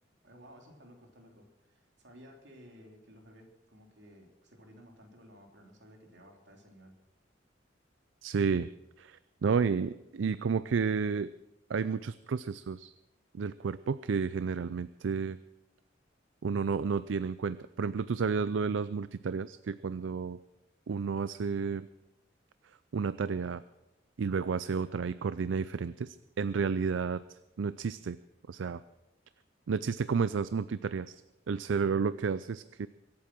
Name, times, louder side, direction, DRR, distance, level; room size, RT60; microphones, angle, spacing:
voice 1, 0.2-7.0, equal, 65° right, 2 dB, 3.3 m, -55 dB
voice 2, 8.2-8.7 9.0-11.3 11.7-12.9 13.3-15.4 16.4-20.4 20.9-21.9 22.9-23.6 24.2-28.2 28.5-28.8 29.7-31.2 31.5-32.9, right 5 dB, 85° right, 15 dB, 0.4 m, -31 dB
24.0 x 8.6 x 6.1 m, 0.99 s
head